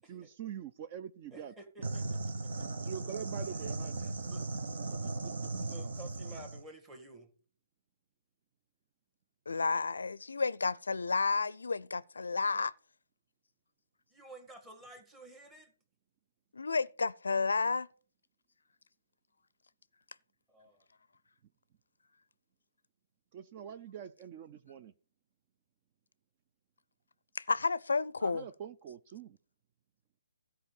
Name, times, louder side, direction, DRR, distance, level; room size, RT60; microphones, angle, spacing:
voice 1, 0.1-1.5 2.8-4.0 5.0-5.1 23.3-24.9 28.2-29.4, right 8 dB, 30° right, 0.5 m, -44 dB
voice 2, 1.3-2.7 3.6-3.7 4.0-4.5 5.6-7.3 14.1-15.7 20.5-20.9, right 2 dB, 10° right, 1.8 m, -52 dB
sound 1, 1.8-6.6, right 3 dB, 60° right, 1.3 m, -37 dB
voice 3, 9.5-12.7 16.5-17.9 27.4-28.4, left 4 dB, 75° left, 0.4 m, -31 dB
13.0 x 5.0 x 6.8 m
figure-of-eight pair, 145°, 0 cm